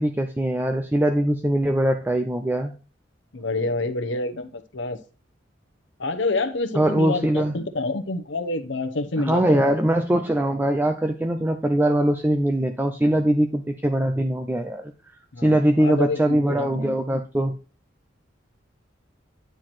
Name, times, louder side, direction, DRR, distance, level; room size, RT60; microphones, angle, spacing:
voice 1, 0.0-2.7 6.7-7.6 9.2-14.9 15.4-17.6, right 1 dB, 10° right, 5 dB, 0.5 m, -22 dB
voice 2, 3.3-5.0 6.0-9.6 13.0-13.2 15.3-16.9, left 2 dB, 70° left, 8 dB, 0.9 m, -28 dB
9.5 x 4.5 x 4.4 m, 0.35 s
head